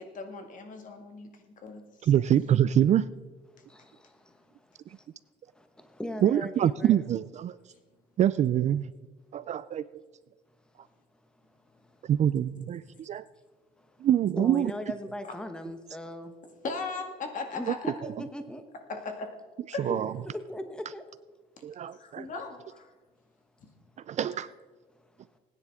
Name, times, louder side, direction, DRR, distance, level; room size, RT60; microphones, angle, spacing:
voice 1, 0.0-1.8 16.6-17.9 18.9-19.3 19.7-19.9 21.9-22.9, left 4 dB, 50° left, 4 dB, 2.0 m, -38 dB
voice 2, 2.0-3.1 6.2-7.6 8.2-8.9 9.3-10.0 12.0-13.2 14.0-14.7 17.7-17.8 19.8-20.1 21.6-22.3 24.1-24.5, right 10 dB, 45° right, 16 dB, 0.4 m, -25 dB
voice 3, 3.7-4.1 5.6-7.0 14.4-16.3 17.5-18.6 19.9-20.0 20.3-21.0, left 1 dB, 5° left, 7 dB, 1.0 m, -38 dB
19.5 x 10.0 x 3.6 m, 1.3 s
cardioid pair, 110°, 17 cm